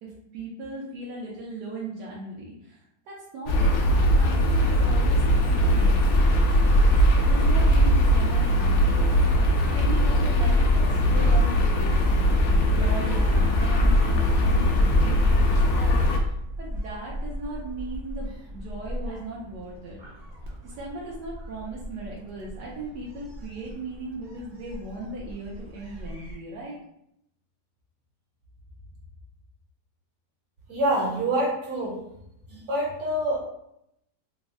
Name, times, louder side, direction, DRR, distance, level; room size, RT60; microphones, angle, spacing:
voice 1, 0.0-2.8 3.1-3.8 4.1-6.8 7.1-9.2 9.7-12.3 12.6-16.1 16.6-20.0 20.6-26.8, right 2 dB, 80° right, -4 dB, 1.2 m, -37 dB
sound 1, 3.5-16.2, equal, 70° left, 0.9 m, -20 dB
Gull seagull, 11.8-26.3, equal, 45° right, 0.6 m, -34 dB
voice 2, 30.7-32.0 32.5-33.4, right 1 dB, 65° right, -3 dB, 1.4 m, -26 dB
3.4 x 2.0 x 3.5 m, 0.78 s
omnidirectional pair, 1.8 m